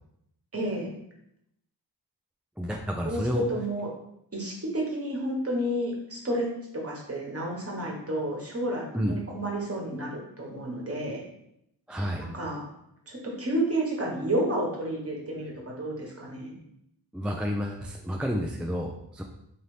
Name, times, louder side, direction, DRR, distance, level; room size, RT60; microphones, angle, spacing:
voice 1, 0.5-0.9 3.0-3.9 4.3-6.5 6.8-11.2 12.3-12.7 13.1-16.6, right 1 dB, 35° right, -2 dB, 1.2 m, -31 dB
voice 2, 2.6-3.5 8.9-9.2 11.9-12.3 17.1-19.2, equal, 5° right, 0 dB, 0.3 m, -30 dB
4.0 x 2.8 x 3.2 m, 0.77 s
wide cardioid pair, 70°, 40 cm